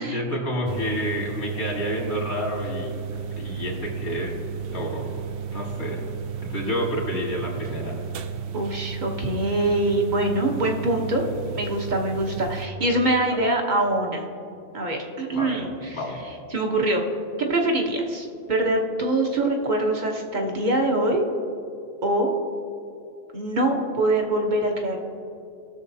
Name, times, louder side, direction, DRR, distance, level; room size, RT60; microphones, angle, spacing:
voice 1, 0.0-2.9 3.4-4.3 4.7-5.1 5.5-6.0 6.4-8.0 15.3-15.6 15.9-16.2, equal, 85° left, -1 dB, 2.1 m, -29 dB
sound 1, 0.7-12.7, right 7 dB, 65° right, 0.7 m, -33 dB
voice 2, 8.5-11.3 11.5-14.2 14.7-16.0 16.5-17.0 17.4-21.2 22.0-22.3 23.3-25.0, right 1 dB, 45° right, 1 dB, 1.1 m, -24 dB
18.5 x 6.5 x 2.7 m, 2.6 s
omnidirectional pair, 1.2 m